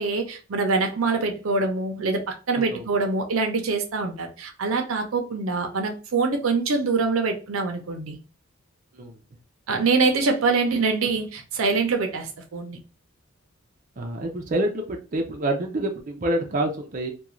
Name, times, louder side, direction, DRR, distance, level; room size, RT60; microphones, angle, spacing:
voice 1, 0.0-8.2 9.7-12.8, right 4 dB, 85° right, 0.6 m, -24 dB
voice 2, 14.0-17.1, right 1 dB, 40° right, 0.5 m, -27 dB
2.4 x 2.3 x 2.9 m
head